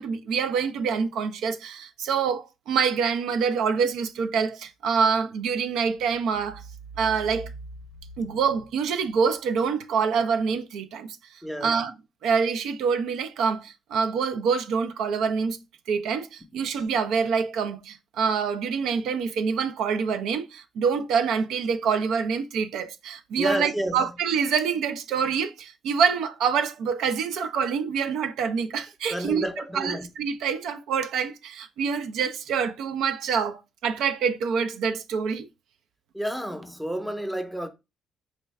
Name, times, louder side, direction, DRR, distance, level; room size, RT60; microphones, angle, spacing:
voice 1, 0.0-6.6 7.0-7.5 8.2-11.9 12.2-15.6 15.9-29.5 29.7-35.5, right 6 dB, 80° right, 0.4 m, -26 dB
voice 2, 11.4-11.8 23.4-24.1 29.1-30.1 36.1-37.7, right 1 dB, ahead, 0.6 m, -30 dB
4.3 x 2.3 x 3.1 m
cardioid pair, 115°, 0 cm